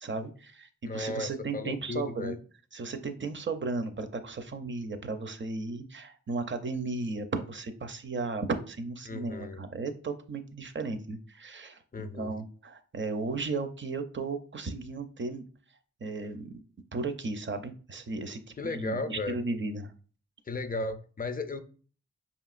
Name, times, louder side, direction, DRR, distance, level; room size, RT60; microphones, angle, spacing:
voice 1, 0.0-2.4 2.7-15.4 16.0-16.5 16.9-19.9, right 3 dB, 40° right, 0.5 m, -35 dB
voice 2, 0.9-2.4 9.0-9.6 11.9-12.3 18.6-19.4 20.5-21.6, left 3 dB, 30° left, 0.4 m, -35 dB
5.1 x 2.9 x 2.4 m
wide cardioid pair, 55°, 30 cm